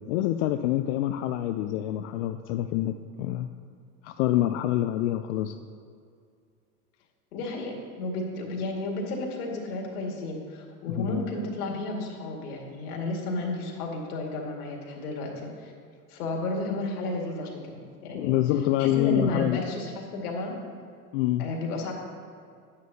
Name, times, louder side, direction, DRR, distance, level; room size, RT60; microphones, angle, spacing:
voice 1, 0.1-3.5 4.0-5.6 10.9-11.2 18.1-19.6 21.1-21.4, left 13 dB, 55° left, 8 dB, 0.5 m, -26 dB
voice 2, 7.3-15.7 16.1-18.4 18.8-20.6 21.4-21.9, left 2 dB, 70° left, 0 dB, 2.1 m, -32 dB
10.5 x 9.6 x 2.8 m, 2.3 s
hypercardioid pair, 95°, 47 cm